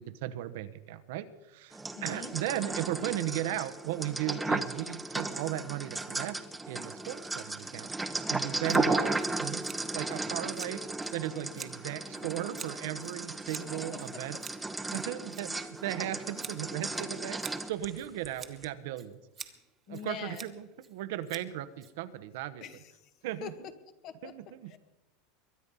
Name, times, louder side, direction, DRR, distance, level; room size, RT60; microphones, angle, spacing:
voice 1, 0.0-6.4 6.7-7.9 8.3-9.6 9.9-14.4 14.9-17.4 17.7-19.2 19.9-22.6 23.2-23.5 24.2-24.7, right 13 dB, 75° right, 12 dB, 1.0 m, -36 dB
sound 1, 1.7-18.3 18.6-18.7, right 2 dB, 10° right, 0.9 m, -35 dB
voice 2, 1.9-2.3 11.5-12.3 13.9-14.4 19.9-20.5 22.6-22.9 23.4-23.5 24.0-24.3 24.7-24.8, left 9 dB, 45° left, 10 dB, 1.6 m, -44 dB
Scissors, 8.7-22.4, right 7 dB, 25° right, 1.3 m, -49 dB
22.5 x 9.8 x 5.5 m, 0.99 s
supercardioid pair, 120°, 0 cm